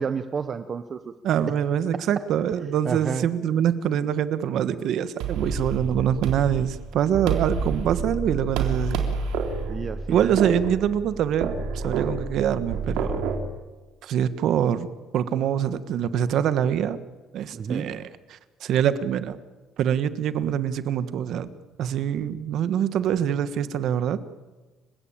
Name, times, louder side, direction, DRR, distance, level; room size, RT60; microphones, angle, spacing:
voice 1, 0.0-1.1 2.8-3.3 9.7-10.4 17.5-17.9, right 6 dB, 30° right, 11 dB, 0.8 m, -30 dB
voice 2, 1.2-9.0 10.1-13.2 14.0-14.9 15.1-17.0 17.3-19.4 19.8-21.5 21.8-24.2, right 9 dB, 55° right, 13 dB, 1.4 m, -24 dB
sound 1, 5.2-13.5, right 5 dB, 80° right, 3.7 m, -29 dB
30.0 x 16.5 x 8.8 m, 1.2 s
cardioid pair, 160°, 0 cm